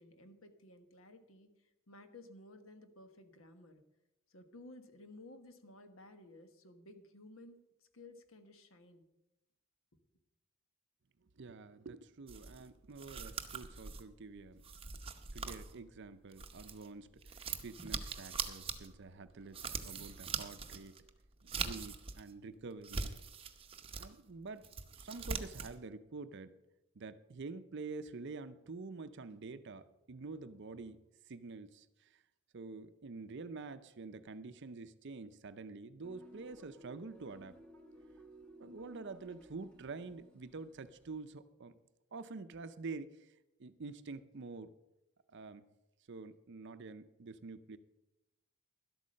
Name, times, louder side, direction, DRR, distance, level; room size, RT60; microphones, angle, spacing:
voice 1, 0.0-3.8 4.3-7.6 7.9-9.0 9.9-10.0, left 2 dB, 65° left, 8 dB, 1.3 m, -56 dB
voice 2, 11.4-14.6 15.3-21.0 21.4-23.2 24.0-24.7 24.9-26.6 27.0-32.2 32.5-37.6 38.6-41.7 42.1-43.3 43.6-44.7 45.3-45.7 46.1-47.8, right 3 dB, 55° right, 12 dB, 0.5 m, -47 dB
sound 1, 12.3-16.9 17.2-22.3 22.7-24.1 24.5-25.8, right 5 dB, 25° right, 0.8 m, -42 dB
sound 2, 36.0-41.2, equal, 5° left, 1.2 m, -58 dB
12.0 x 8.3 x 6.4 m, 0.94 s
head